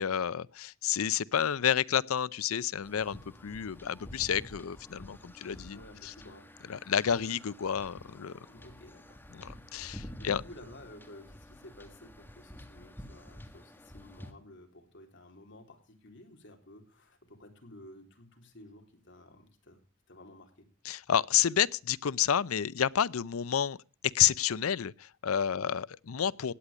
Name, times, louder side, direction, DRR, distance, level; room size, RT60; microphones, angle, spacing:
voice 1, 0.0-6.1 6.7-8.4 9.3-10.4 20.8-23.8 24.1-26.5, left 9 dB, 75° left, 0.5 m, -30 dB
sound 1, 2.8-14.3, equal, 10° left, 1.5 m, -49 dB
voice 2, 5.7-6.9 7.2-7.3 8.4-9.2 10.2-19.8 20.1-20.7 25.5-25.8, left 1 dB, 55° left, 3.7 m, -53 dB
17.0 x 9.8 x 5.0 m
head